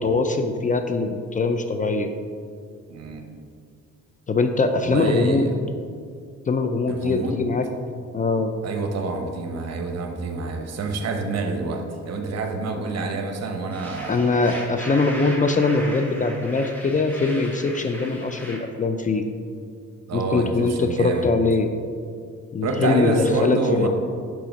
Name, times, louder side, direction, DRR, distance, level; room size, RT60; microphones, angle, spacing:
voice 1, 0.0-2.1 4.3-5.5 6.5-7.7 8.1-8.6 14.1-19.3 20.1-21.7 22.5-23.1 23.4-23.9, left 3 dB, 25° left, 7 dB, 0.4 m, -22 dB
voice 2, 2.9-3.3 4.8-5.5 6.9-7.4 8.6-14.3 20.1-21.3 22.6-23.9, right 3 dB, 55° right, 4 dB, 0.9 m, -27 dB
sound 1, 13.7-18.6, equal, 5° left, 1.4 m, -38 dB
5.7 x 3.8 x 5.1 m, 2.2 s
cardioid pair, 90°, 30 cm